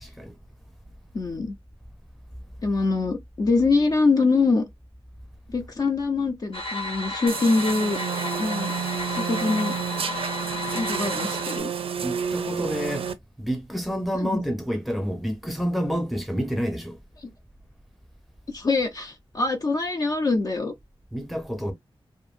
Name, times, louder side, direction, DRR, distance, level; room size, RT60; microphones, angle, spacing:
voice 1, 0.0-0.3 12.0-13.1 13.4-17.0 21.1-21.7, equal, ahead, 0.8 m, -29 dB
voice 2, 1.1-1.5 2.6-4.6 5.5-8.0 8.4-8.7 9.1-9.7 10.7-11.7 14.1-14.4 18.5-20.7, left 3 dB, 40° left, 0.4 m, -24 dB
sound 1, 6.5-11.6, left 2 dB, 75° left, 0.8 m, -33 dB
sound 2, 7.3-13.1, right 7 dB, 75° right, 0.4 m, -30 dB
2.6 x 2.5 x 2.4 m
wide cardioid pair, 125°, 10 cm